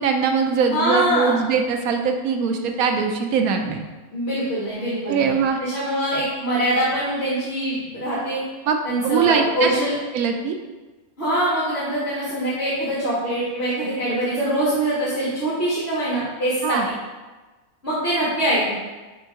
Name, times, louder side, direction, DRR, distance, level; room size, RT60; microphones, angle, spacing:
voice 1, 0.0-3.8 5.1-5.6 8.7-8.8 9.0-9.7 10.1-10.6 16.6-16.9, right 6 dB, 85° right, 4 dB, 1.1 m, -21 dB
voice 2, 0.7-1.4 4.1-5.3 5.6-8.4 8.8-9.9 11.2-16.8 17.8-18.7, right 1 dB, 45° left, -10 dB, 1.9 m, -23 dB
5.2 x 4.5 x 4.5 m, 1.2 s
omnidirectional pair, 1.5 m